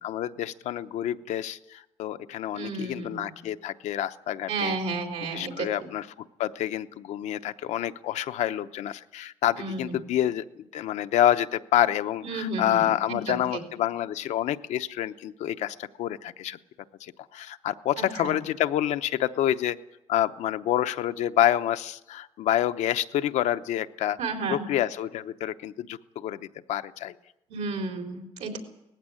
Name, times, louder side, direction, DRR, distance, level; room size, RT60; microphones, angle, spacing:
voice 1, 0.0-4.8 5.3-6.1 6.4-16.6 17.0-19.8 20.1-27.1, left 11 dB, 90° left, 10 dB, 0.8 m, -28 dB
voice 2, 2.5-3.3 4.5-5.7 9.6-9.9 12.2-12.8 13.1-13.4 18.2-18.3 24.2-24.6 27.5-28.6, right 3 dB, 85° right, 4 dB, 3.8 m, -32 dB
19.0 x 15.5 x 9.9 m, 0.91 s
cardioid pair, 120°, 12 cm